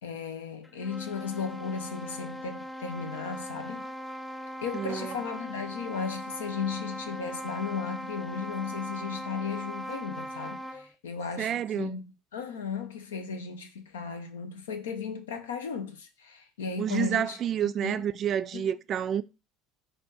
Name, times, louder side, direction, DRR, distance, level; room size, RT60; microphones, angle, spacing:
voice 1, 0.0-3.9 4.6-12.1 12.3-17.4 17.8-18.0 18.5-18.7, left 6 dB, 85° left, 0.7 m, -35 dB
sound 1, 0.6-10.9, equal, 15° left, 0.5 m, -39 dB
voice 2, 4.7-5.2 11.4-12.0 16.8-19.2, right 9 dB, 45° right, 0.3 m, -29 dB
4.2 x 2.6 x 4.6 m
hypercardioid pair, 75°, 0 cm